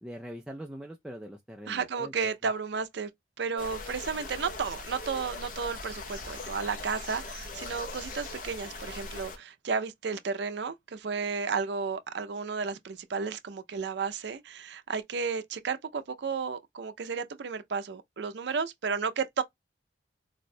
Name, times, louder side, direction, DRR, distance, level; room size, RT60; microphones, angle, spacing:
voice 1, 0.0-2.5, equal, 5° right, 0.3 m, -43 dB
voice 2, 1.7-3.1 3.4-19.4, right 5 dB, 70° right, 0.5 m, -33 dB
sound 1, 3.6-9.4, left 3 dB, 45° left, 0.7 m, -40 dB
4.0 x 2.2 x 2.5 m
head